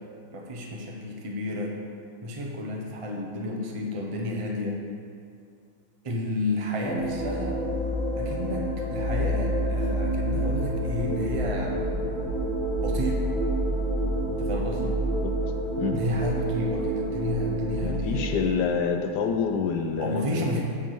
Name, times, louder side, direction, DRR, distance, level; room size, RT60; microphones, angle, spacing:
voice 1, 0.3-1.7 2.2-4.8 6.0-7.7 8.2-12.1 12.8-13.3 14.4-15.0 15.9-18.5 20.0-20.6, left 1 dB, 25° right, -1 dB, 1.0 m, -31 dB
sound 1, 6.8-18.5, right 1 dB, 15° left, 2.2 m, -28 dB
voice 2, 17.8-20.6, left 6 dB, 80° left, 5 dB, 1.2 m, -27 dB
8.3 x 5.3 x 7.7 m, 2.3 s
omnidirectional pair, 1.8 m